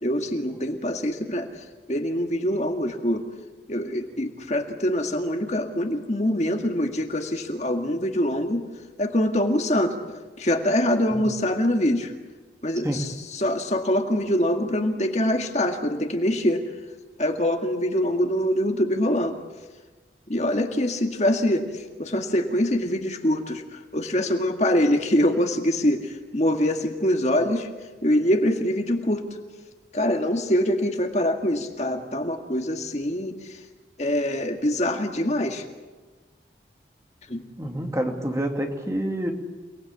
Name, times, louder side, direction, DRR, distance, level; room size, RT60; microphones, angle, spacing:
voice 1, 0.0-3.3 3.7-8.7 9.0-10.0 10.4-12.1 12.6-16.7 17.2-19.4 20.3-27.7 28.0-29.4 29.9-33.6 34.0-35.6 37.3-37.4, left 1 dB, 40° left, 4 dB, 2.0 m, -24 dB
voice 2, 37.6-39.3, right 1 dB, 15° right, 3 dB, 2.5 m, -27 dB
29.5 x 20.0 x 8.6 m, 1.3 s
head